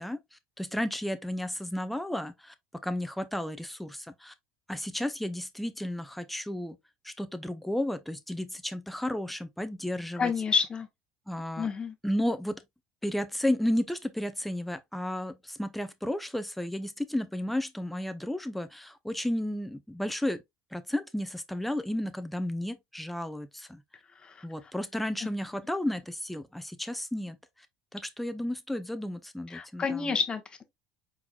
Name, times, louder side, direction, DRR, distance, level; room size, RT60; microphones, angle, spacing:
voice 1, 0.0-2.5 2.8-4.3 4.7-6.8 7.0-10.3 11.3-11.7 12.0-12.6 13.0-20.4 20.7-23.8 24.4-27.4 27.9-30.1, left 1 dB, 5° left, 0.6 m, -33 dB
voice 2, 10.2-10.9 11.6-11.9 24.2-24.5 29.5-30.6, left 5 dB, 25° left, 1.1 m, -29 dB
4.5 x 3.9 x 2.3 m
supercardioid pair, 110°, 3 cm